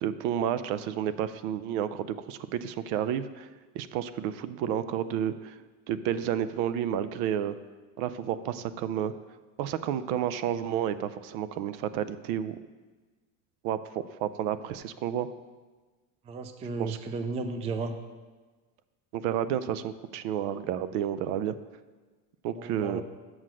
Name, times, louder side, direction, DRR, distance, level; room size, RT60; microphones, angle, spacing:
voice 1, 0.0-3.5 3.7-5.6 5.9-7.6 8.0-9.1 9.6-12.6 13.6-15.3 16.8-17.0 19.1-21.6 22.4-23.0, right 10 dB, 70° right, 14 dB, 0.6 m, -31 dB
voice 2, 16.2-17.9 22.5-23.0, right 3 dB, 15° right, 8 dB, 0.3 m, -34 dB
6.3 x 5.8 x 6.2 m, 1.3 s
supercardioid pair, 115°, 46 cm